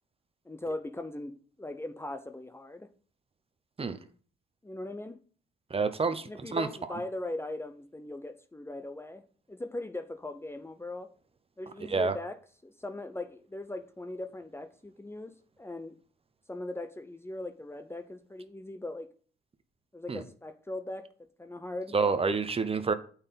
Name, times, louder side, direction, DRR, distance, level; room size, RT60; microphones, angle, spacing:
voice 1, 0.4-2.9 4.6-5.2 6.3-9.2 9.5-11.1 11.6-15.9 16.5-19.1 19.9-21.1 21.4-21.9, left 2 dB, 10° left, 0.8 m, -39 dB
voice 2, 5.7-6.7 11.9-12.1 20.1-20.2 21.9-22.9, right 4 dB, 30° right, 0.9 m, -28 dB
8.7 x 4.6 x 5.7 m
cardioid pair, 90°, 20 cm